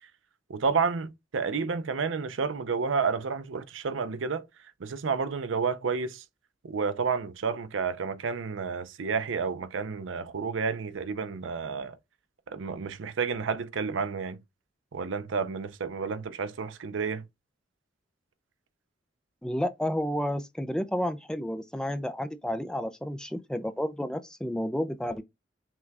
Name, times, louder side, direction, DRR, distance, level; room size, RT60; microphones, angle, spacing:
voice 1, 0.5-4.4 4.8-6.2 6.6-12.0 12.5-14.4 14.9-17.2, right 5 dB, 75° right, 0.5 m, -30 dB
voice 2, 19.4-25.2, equal, 5° left, 0.3 m, -31 dB
6.0 x 2.3 x 3.3 m
head